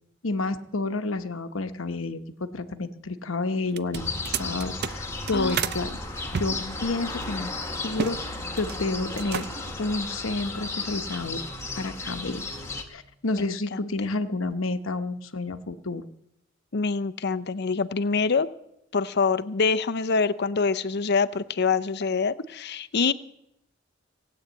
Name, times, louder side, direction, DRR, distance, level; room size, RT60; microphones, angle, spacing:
voice 1, 0.2-6.0 6.4-7.5 7.8-9.5 9.8-11.4 11.7-12.4 12.9-16.0, left 3 dB, 75° left, 9 dB, 1.0 m, -30 dB
sound 1, 3.7-5.8 6.3-8.2 8.5-8.8 9.1-9.8, right 7 dB, 55° right, 0.5 m, -32 dB
sound 2, 3.9-12.8, left 3 dB, 15° left, 1.7 m, -34 dB
voice 2, 13.3-13.9 16.7-18.5 18.9-23.1, left 4 dB, 55° left, 11 dB, 0.6 m, -25 dB
18.5 x 8.8 x 8.3 m, 0.81 s
head